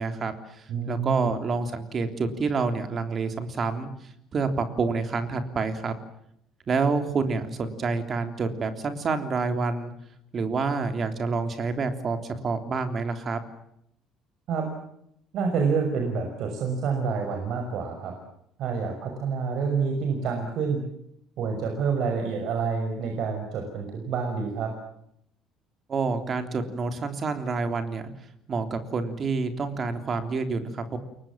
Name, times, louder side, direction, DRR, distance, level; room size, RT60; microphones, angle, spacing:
voice 1, 0.0-3.9 4.3-5.9 6.7-9.9 10.3-13.4 25.9-28.1 28.5-31.0, right 4 dB, 30° right, 8 dB, 3.4 m, -28 dB
voice 2, 0.7-1.3 14.5-14.6 15.3-18.1 18.6-20.8 21.4-24.7, right 5 dB, 55° right, 3 dB, 5.9 m, -28 dB
29.5 x 23.0 x 7.5 m, 0.75 s
cardioid pair, 150°, 0 cm